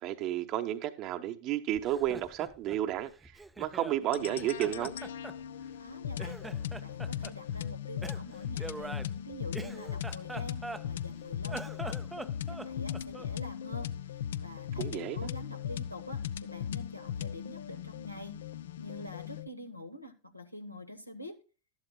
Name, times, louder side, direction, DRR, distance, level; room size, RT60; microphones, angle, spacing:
voice 1, 0.0-4.9 14.8-15.2, right 12 dB, 40° right, 0.8 m, -32 dB
Laughter, 1.7-4.0 4.4-5.9 6.2-7.4 8.0-11.1 11.4-13.4, right 2 dB, 10° right, 0.5 m, -44 dB
sound 1, 4.1-19.5, left 9 dB, 60° left, 0.5 m, -38 dB
voice 2, 5.8-8.9 9.2-12.0 12.5-18.4 18.8-21.4, left 1 dB, 85° left, 1.3 m, -46 dB
12.5 x 11.5 x 2.3 m
figure-of-eight pair, 90°, 0 cm